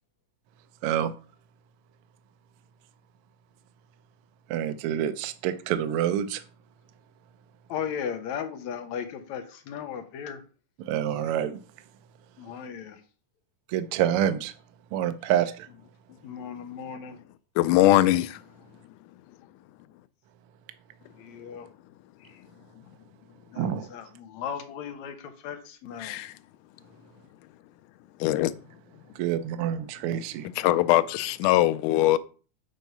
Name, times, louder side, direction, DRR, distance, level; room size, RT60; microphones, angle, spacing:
voice 1, 4.5-6.4 10.9-11.6 13.7-14.5 14.9-15.7 23.6-23.9 29.2-30.5, right 10 dB, 85° right, 1.2 m, -27 dB
voice 2, 7.7-10.4 12.4-13.0 16.2-17.2 21.2-21.7 22.2-22.4 23.5-26.2, left 8 dB, 70° left, 2.1 m, -36 dB
voice 3, 17.6-18.4 26.0-26.3 28.2-28.6 30.6-32.2, left 15 dB, 90° left, 2.1 m, -21 dB
7.9 x 4.5 x 5.4 m
omnidirectional pair, 3.6 m